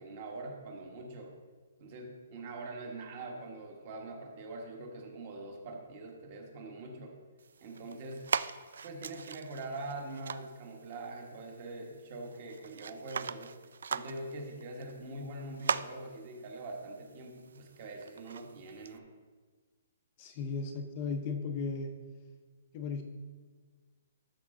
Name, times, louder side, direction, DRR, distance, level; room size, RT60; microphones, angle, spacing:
voice 1, 0.0-1.3 1.8-7.2 7.6-8.3 8.8-13.6 13.9-19.1, right 2 dB, 30° right, 2 dB, 1.3 m, -43 dB
sound 1, 7.4-19.0, right 6 dB, 75° right, 0.3 m, -41 dB
voice 2, 20.2-21.9 22.7-23.0, left 4 dB, 25° left, 5 dB, 0.6 m, -36 dB
12.5 x 6.1 x 3.7 m, 1.4 s
hypercardioid pair, 175°, 0 cm